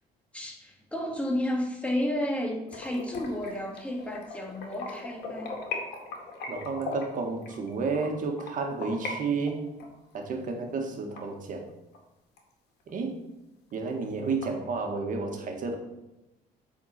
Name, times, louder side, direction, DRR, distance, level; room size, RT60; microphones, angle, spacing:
voice 1, 0.3-5.6, left 1 dB, 5° left, 1 dB, 1.8 m, -32 dB
sound 1, 2.7-9.1 9.5-12.0 12.4-12.5 12.9-13.0 13.3-13.4 13.7-14.4, left 3 dB, 75° left, 2.1 m, -39 dB
voice 2, 6.5-9.7 10.1-11.7 12.9-13.2 13.7-15.8, right 4 dB, 50° right, 4 dB, 1.6 m, -31 dB
8.1 x 4.4 x 5.8 m, 0.96 s
cardioid pair, 110°, 17 cm